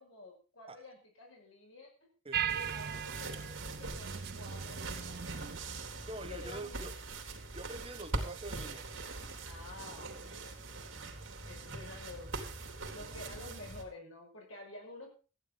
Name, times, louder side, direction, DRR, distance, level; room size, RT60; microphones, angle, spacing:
voice 1, 0.0-2.1 2.5-5.5 6.3-6.8 9.4-11.2 11.4-12.3 12.9-15.1, left 2 dB, 70° left, 1 dB, 5.7 m, -50 dB
voice 2, 2.2-2.6 6.1-6.9 7.5-8.9, right 2 dB, 25° right, 8 dB, 1.1 m, -45 dB
sound 1, 2.3-5.6, right 8 dB, 50° right, 0.6 m, -38 dB
sound 2, 2.5-13.8, right 3 dB, 65° right, 3.2 m, -42 dB
15.0 x 10.0 x 5.2 m, 0.35 s
head